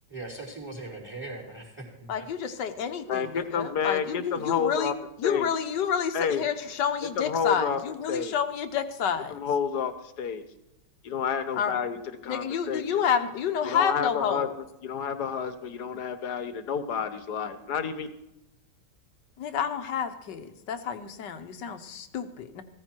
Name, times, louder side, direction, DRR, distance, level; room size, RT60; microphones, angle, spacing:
voice 1, 0.1-2.5, right 2 dB, 5° right, 0 dB, 3.9 m, -40 dB
voice 2, 2.1-4.9 5.2-9.4 11.6-11.8 12.3-14.5 19.4-22.6, left 7 dB, 85° left, 9 dB, 1.7 m, -29 dB
voice 3, 3.1-4.9 5.2-5.5 6.1-6.5 7.2-7.8 8.1-8.4 9.3-10.4 11.0-13.0 13.6-14.5 14.8-18.1, left 7 dB, 70° left, 10 dB, 1.7 m, -30 dB
16.5 x 14.0 x 4.5 m, 0.87 s
omnidirectional pair, 1.8 m